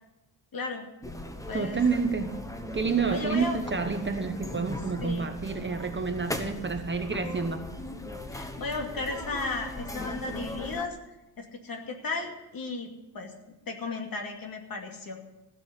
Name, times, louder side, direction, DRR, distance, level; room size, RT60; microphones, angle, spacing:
voice 1, 0.5-0.9 1.5-1.8 3.1-3.6 5.0-5.3 8.3-11.0 11.4-13.3 13.7-15.2, left 3 dB, 50° left, 3 dB, 2.6 m, -35 dB
sound 1, 1.0-10.9, left 1 dB, 5° left, 1.1 m, -38 dB
voice 2, 1.5-2.4 2.7-7.6, right 5 dB, 25° right, 6 dB, 1.1 m, -29 dB
16.0 x 6.4 x 9.9 m, 1.0 s
cardioid pair, 130°, 45 cm